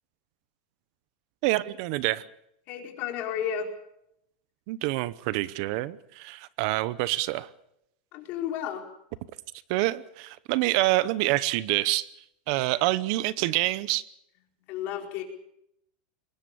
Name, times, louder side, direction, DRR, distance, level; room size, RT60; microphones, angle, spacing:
voice 1, 1.4-2.2 4.7-7.5 9.7-12.1 12.5-14.0, right 18 dB, 50° right, 18 dB, 0.9 m, -26 dB
voice 2, 2.7-3.7 8.1-8.8 14.7-15.2, left 9 dB, 40° left, 4 dB, 4.6 m, -32 dB
23.5 x 20.5 x 7.0 m, 0.77 s
supercardioid pair, 165°, 5 cm